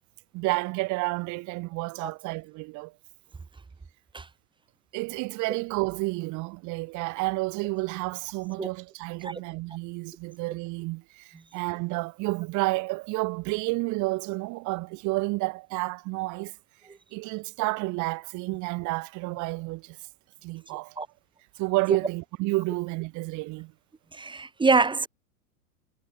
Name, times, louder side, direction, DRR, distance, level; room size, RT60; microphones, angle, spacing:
voice 1, 0.3-2.9 4.9-16.5 17.1-20.0 20.4-21.0 21.6-23.7, right 24 dB, 40° right, 5.1 m, -30 dB
voice 2, 24.2-25.1, right 4 dB, 10° right, 2.7 m, -24 dB
figure-of-eight pair, 100°, 43 cm